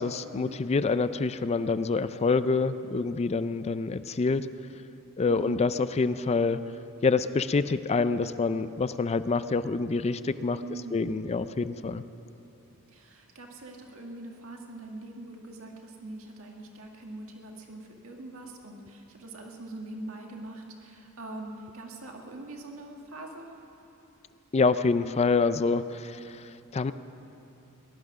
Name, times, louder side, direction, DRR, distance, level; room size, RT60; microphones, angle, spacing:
voice 1, 0.0-4.5 5.2-6.6 7.0-10.6 10.9-12.0 24.5-26.9, left 4 dB, 30° left, 13 dB, 0.4 m, -26 dB
voice 2, 5.3-5.6 10.6-11.2 12.9-23.5, right 2 dB, 70° right, 1 dB, 1.9 m, -42 dB
20.0 x 11.5 x 6.1 m, 2.9 s
head